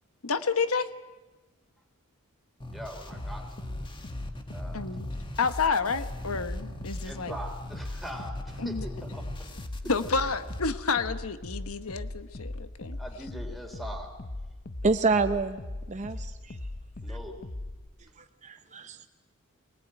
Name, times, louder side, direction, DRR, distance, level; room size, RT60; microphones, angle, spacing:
voice 1, 0.2-0.9 4.7-5.1 5.4-7.3 8.6-8.8 9.9-13.0, left 4 dB, 80° left, 10 dB, 1.1 m, -29 dB
sound 1, 2.6-10.6, left 1 dB, 20° left, 1.8 m, -42 dB
voice 2, 2.6-3.7 4.5-4.8 7.0-9.2 9.8-9.9 13.0-14.1 17.0-17.4, equal, ahead, 3 dB, 3.7 m, -41 dB
sound 2, 3.1-17.9, left 1 dB, 45° left, 0.9 m, -39 dB
voice 3, 14.8-15.6 15.9-16.6 18.4-19.0, right 3 dB, 35° right, 8 dB, 0.7 m, -27 dB
23.5 x 19.5 x 9.1 m, 1.2 s
head